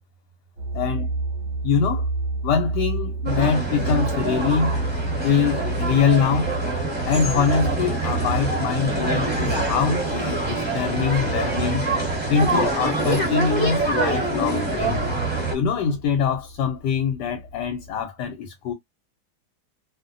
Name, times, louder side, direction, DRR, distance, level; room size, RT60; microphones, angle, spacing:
sound 1, 0.6-18.0, right 2 dB, 55° right, 1.0 m, -32 dB
voice 1, 0.7-1.1 1.6-2.1 2.4-4.8 5.2-6.5 7.0-11.9 12.3-15.0 15.5-18.7, left 6 dB, 90° left, 1.2 m, -23 dB
sound 2, 3.2-15.5, right 2 dB, 10° right, 0.9 m, -25 dB
2.7 x 2.1 x 2.4 m
omnidirectional pair, 1.8 m